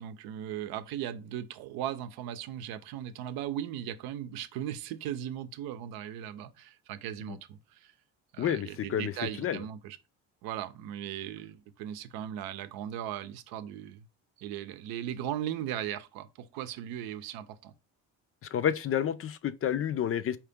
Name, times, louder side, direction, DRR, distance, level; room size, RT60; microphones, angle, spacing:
voice 1, 0.0-7.9 8.3-10.0 10.4-14.0 14.4-17.7, right 11 dB, 85° right, 0.7 m, -38 dB
voice 2, 8.4-9.6 18.5-20.4, left 9 dB, 40° left, 0.4 m, -30 dB
4.5 x 2.8 x 3.5 m
cardioid pair, 90°, 35 cm